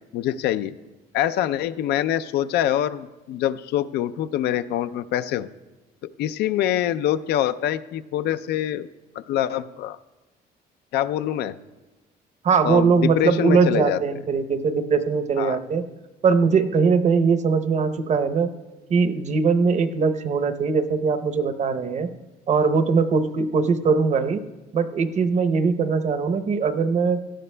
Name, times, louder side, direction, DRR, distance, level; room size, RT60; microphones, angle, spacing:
voice 1, 0.1-0.7 1.1-5.5 6.2-8.9 9.3-10.0 10.9-11.5 12.6-14.0 15.4-15.6, left 12 dB, 75° left, 13 dB, 0.4 m, -24 dB
voice 2, 12.4-15.8 16.2-18.5 18.9-22.1 22.5-24.4 24.7-27.2, right 5 dB, 45° right, 11 dB, 0.8 m, -21 dB
17.5 x 12.5 x 2.2 m, 1.1 s
cardioid pair, 110°, 17 cm